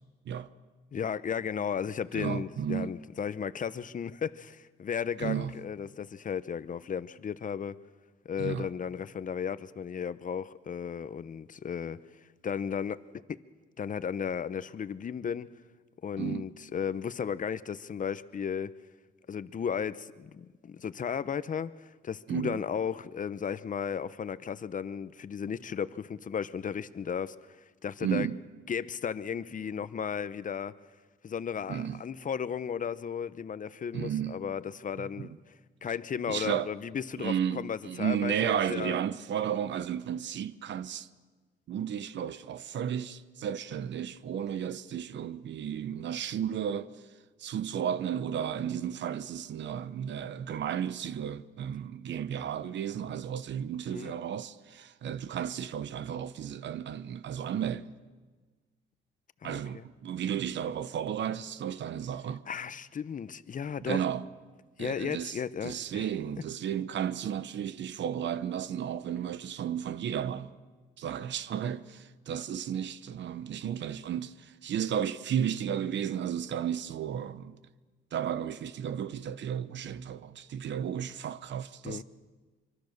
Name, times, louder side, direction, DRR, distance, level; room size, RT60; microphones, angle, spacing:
voice 1, 0.9-7.8 8.3-12.0 12.4-13.0 13.3-13.4 13.8-15.5 16.0-18.7 19.3-27.6 27.8-28.3 28.7-30.7 31.2-35.5 35.8-39.0 53.9-54.1 59.4-59.8 62.5-64.0 64.8-66.1 81.8-82.0, left 7 dB, 40° left, 0.9 m, -35 dB
voice 2, 2.1-2.9 5.2-5.5 8.4-8.7 16.2-16.5 22.3-22.6 28.0-28.4 31.7-32.0 33.9-34.4 35.0-35.3 36.3-36.7 37.2-41.1 41.7-47.0 47.4-57.9 59.4-62.4 63.8-64.3 64.8-65.4 65.6-70.5 71.0-77.6 78.1-82.0, right 9 dB, 65° right, 1.0 m, -33 dB
24.5 x 24.0 x 6.7 m
cardioid pair, 90°, 20 cm